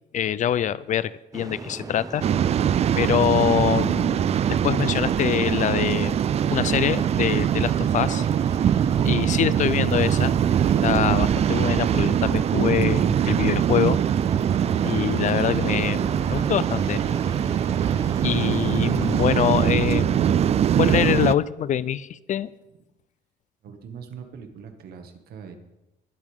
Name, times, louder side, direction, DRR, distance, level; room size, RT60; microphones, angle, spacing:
voice 1, 0.1-2.2 3.0-6.2 6.5-8.3 9.0-10.3 10.8-14.0 14.8-17.0 18.2-22.5, left 10 dB, 45° left, 18 dB, 0.5 m, -25 dB
sound 1, 1.3-19.7, right 3 dB, 20° right, 0.9 m, -38 dB
Waves surf, 2.2-21.3, right 9 dB, 40° right, 0.4 m, -22 dB
voice 2, 23.6-25.6, right 6 dB, 65° right, 5 dB, 1.9 m, -41 dB
21.5 x 8.3 x 3.6 m, 0.95 s
cardioid pair, 110°, 17 cm